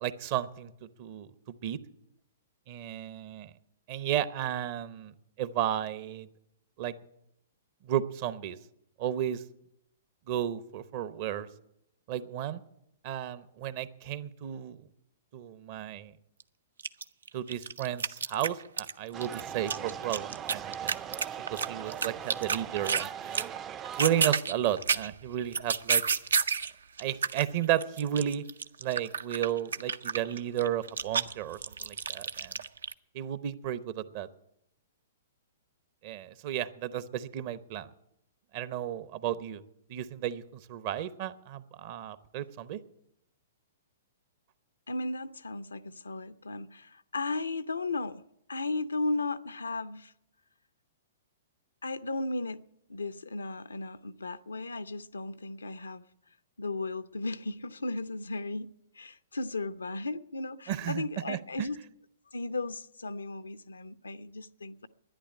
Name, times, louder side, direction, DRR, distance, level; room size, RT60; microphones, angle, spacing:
voice 1, 0.0-1.3 1.6-1.8 2.7-3.5 3.9-5.1 5.4-6.3 6.8-6.9 7.9-8.6 9.0-9.4 10.3-11.5 12.1-12.6 13.0-14.8 15.3-16.1 17.3-20.9 21.5-23.5 24.0-26.0 27.0-28.4 28.8-32.5 33.1-34.3 36.0-37.9 38.5-39.6 39.9-40.4 40.7-42.8 60.7-61.7, right 11 dB, 45° right, 0.8 m, -33 dB
sound 1, 16.4-16.5 16.8-18.9 19.2-23.1 23.3-23.6 23.9-26.7 27.0-32.9, right 5 dB, 75° right, 0.5 m, -30 dB
sound 2, 19.1-24.3, right 9 dB, 25° right, 0.4 m, -40 dB
voice 2, 44.9-48.2 48.5-50.1 51.8-52.6 52.9-56.0 56.6-61.8 62.3-64.9, left 2 dB, 85° left, 0.6 m, -35 dB
11.5 x 10.0 x 8.5 m
hypercardioid pair, 115°, 0 cm